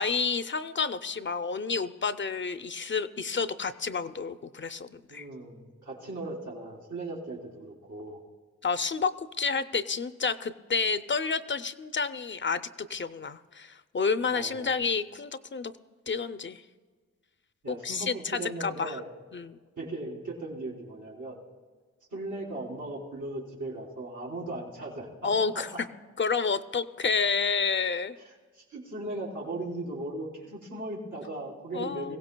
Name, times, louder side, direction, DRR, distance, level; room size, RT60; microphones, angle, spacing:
voice 1, 0.0-5.3 8.6-15.7 16.1-16.6 17.8-19.0 19.3-19.6 25.2-25.7 26.2-28.2 31.7-32.2, left 5 dB, 40° left, 11 dB, 0.5 m, -30 dB
voice 2, 5.1-8.2 14.3-14.7 17.6-19.1 19.8-21.4 22.1-25.3 25.5-25.6 28.2-32.2, right 2 dB, 90° right, -5 dB, 3.4 m, -38 dB
21.5 x 16.5 x 2.2 m, 1.5 s
cardioid pair, 70°, 30 cm